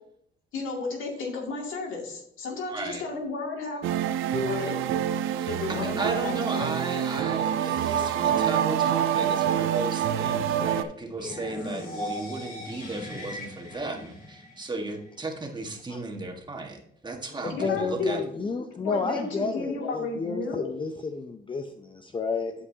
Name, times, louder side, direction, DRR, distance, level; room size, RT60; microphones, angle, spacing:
voice 1, 0.5-3.9 4.3-4.8 5.5-6.7 17.5-18.3 18.8-20.7, left 3 dB, 80° left, 0 dB, 2.3 m, -32 dB
voice 2, 2.7-3.0 5.4-18.2, right 2 dB, 20° right, 2 dB, 1.4 m, -35 dB
sound 1, 3.8-10.8, right 9 dB, 85° right, 0.6 m, -26 dB
sound 2, 11.2-15.1, left 1 dB, 45° left, 3.3 m, -38 dB
voice 3, 17.4-22.5, left 4 dB, 25° left, 7 dB, 0.5 m, -31 dB
11.0 x 5.4 x 2.7 m, 0.70 s
cardioid pair, 90°, 20 cm